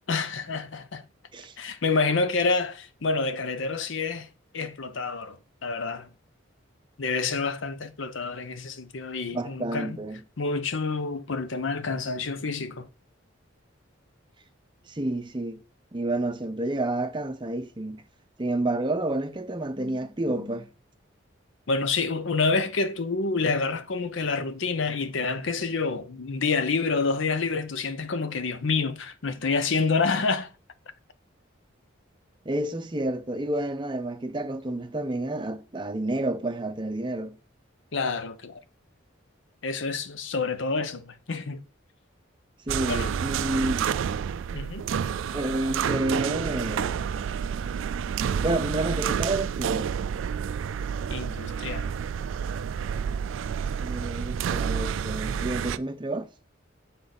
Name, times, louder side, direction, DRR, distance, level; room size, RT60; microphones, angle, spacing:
voice 1, 0.1-1.0 1.6-4.3 4.5-6.1 7.0-10.0 10.4-12.9 21.7-30.5 37.9-38.6 39.6-41.6 42.9-43.1 44.5-44.9 51.1-51.9, left 4 dB, 70° left, 0.7 m, -28 dB
voice 2, 9.3-10.2 14.9-15.6 15.9-18.0 18.4-20.7 32.5-37.3 42.7-43.9 45.3-47.0 48.4-49.9 53.8-56.3, right 1 dB, 25° right, 0.6 m, -29 dB
sound 1, 42.7-55.8, right 7 dB, 75° right, 0.3 m, -29 dB
8.4 x 3.9 x 4.0 m
head